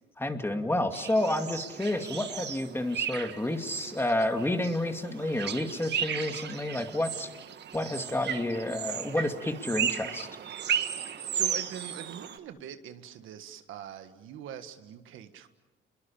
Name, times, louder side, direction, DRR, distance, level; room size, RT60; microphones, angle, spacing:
voice 1, 0.2-7.3 7.7-10.3, left 1 dB, 10° left, 2.3 m, -30 dB
sound 1, 0.9-12.4, right 8 dB, 60° right, 1.5 m, -35 dB
voice 2, 11.1-15.5, right 9 dB, 80° right, 1.6 m, -43 dB
29.5 x 22.5 x 7.2 m
cardioid pair, 90°, 20 cm